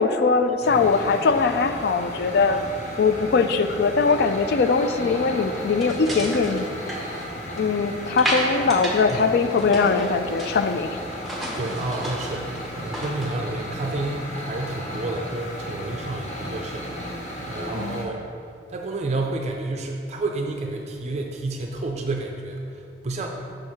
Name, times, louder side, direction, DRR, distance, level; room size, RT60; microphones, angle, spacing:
voice 1, 0.0-2.6 3.0-6.6 7.6-11.0 17.7-18.1, left 4 dB, 60° left, 9 dB, 0.3 m, -21 dB
sound 1, 0.6-18.0, equal, 40° left, 1.0 m, -35 dB
sound 2, 5.8-7.7 8.2-9.1 9.4-10.8 11.1-13.3, right 1 dB, ahead, 0.9 m, -31 dB
voice 2, 11.6-17.2 17.5-18.2 18.7-23.3, right 2 dB, 40° right, 2 dB, 0.4 m, -30 dB
6.3 x 4.4 x 4.8 m, 2.5 s
head